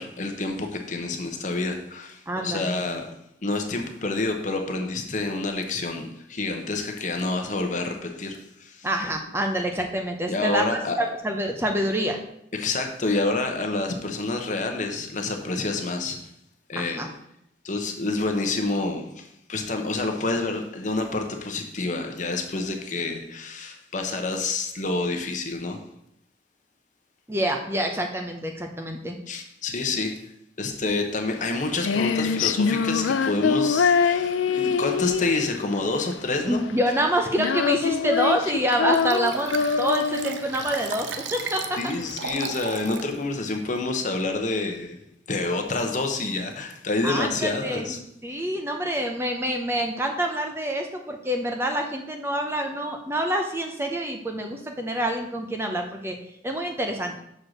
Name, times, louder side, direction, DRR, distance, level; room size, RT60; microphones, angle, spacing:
voice 1, 0.0-3.1 3.4-8.9 10.3-11.0 12.5-16.2 16.7-17.1 17.6-25.8 29.3-30.3 30.6-36.6 41.8-45.0 45.3-48.0 48.3-48.4, left 3 dB, 40° left, 4 dB, 0.9 m, -28 dB
voice 2, 2.3-2.8 8.8-12.2 16.8-17.1 27.3-29.2 36.5-41.9 47.0-48.0 48.2-56.2 56.4-57.1, right 1 dB, 15° right, 3 dB, 0.6 m, -27 dB
Female singing, 31.3-42.3, left 5 dB, 85° left, 0.4 m, -25 dB
Liquid, 38.9-43.1 43.6-43.7, right 6 dB, 70° right, 0.6 m, -35 dB
6.3 x 4.5 x 6.4 m, 0.76 s
head